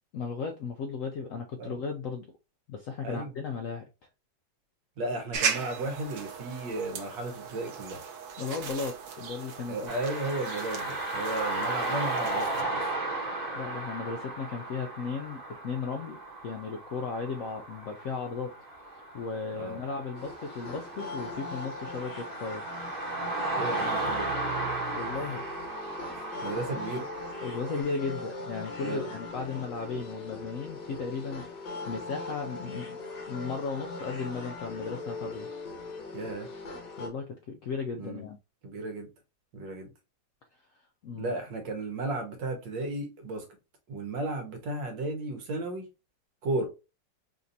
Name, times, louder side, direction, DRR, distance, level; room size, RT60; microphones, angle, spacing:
voice 1, 0.1-2.3 2.7-3.8 8.4-9.8 13.6-16.2 16.4-18.5 19.1-22.6 24.9-25.4 26.7-26.8 27.4-31.5 31.9-33.0 33.3-35.5 37.0-38.4 41.0-41.3, left 5 dB, 75° left, 0.7 m, -35 dB
voice 2, 5.0-8.0 9.7-12.9 19.5-19.8 23.5-24.4 26.1-27.0 28.8-29.1 29.5-29.6 36.1-36.5 37.9-38.3 38.6-39.1 39.5-39.9 41.1-43.4 43.9-45.9 46.4-46.7, right 2 dB, 80° right, 1.7 m, -34 dB
sound 1, 5.3-12.6, right 6 dB, 65° right, 1.2 m, -37 dB
sound 2, 9.9-27.8, right 2 dB, 25° right, 1.2 m, -35 dB
sound 3, 20.1-37.1, left 3 dB, 55° left, 1.3 m, -40 dB
5.2 x 2.6 x 2.6 m
omnidirectional pair, 1.9 m